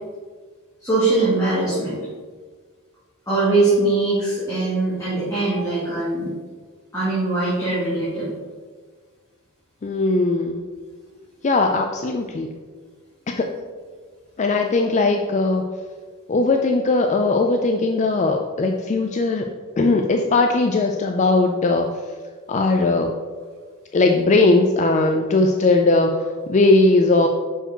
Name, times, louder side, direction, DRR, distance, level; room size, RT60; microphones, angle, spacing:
voice 1, 0.8-2.0 3.3-6.3 6.9-8.3, right 2 dB, 15° left, -11 dB, 2.0 m, -21 dB
voice 2, 9.8-10.6 11.4-12.5 13.3-13.5 14.4-15.6 16.3-19.5 19.8-21.9 22.5-23.1 23.9-27.3, left 3 dB, 30° left, 3 dB, 0.4 m, -19 dB
6.2 x 4.6 x 4.5 m, 1.5 s
head